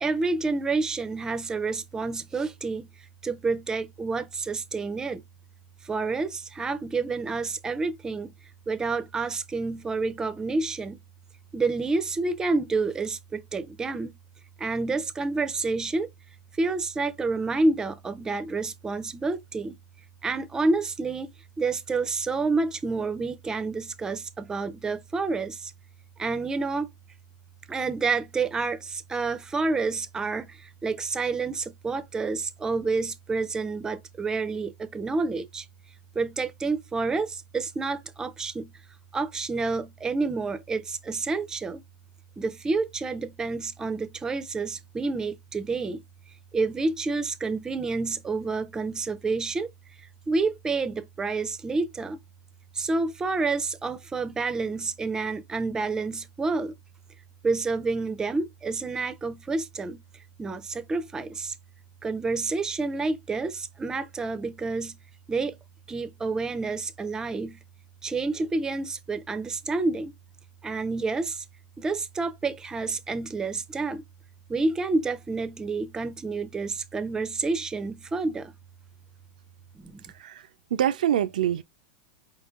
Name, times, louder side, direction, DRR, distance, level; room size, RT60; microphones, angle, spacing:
voice 1, 0.0-2.9 3.2-5.2 5.8-8.3 8.7-11.0 11.5-14.1 14.6-16.1 16.6-19.8 20.2-21.3 21.6-25.7 26.2-26.9 27.7-35.6 36.1-38.7 39.1-41.8 42.4-46.0 46.5-49.7 50.3-52.2 52.8-56.7 57.4-60.0 60.4-61.5 62.0-65.0 65.3-65.6 65.9-67.6 68.0-70.1 70.6-71.4 71.8-74.0 74.5-78.5 79.8-80.0, right 3 dB, 15° right, 0.6 m, -29 dB
voice 2, 80.1-81.6, right 10 dB, 85° right, 0.5 m, -26 dB
5.0 x 3.7 x 2.4 m
hypercardioid pair, 120°, 4 cm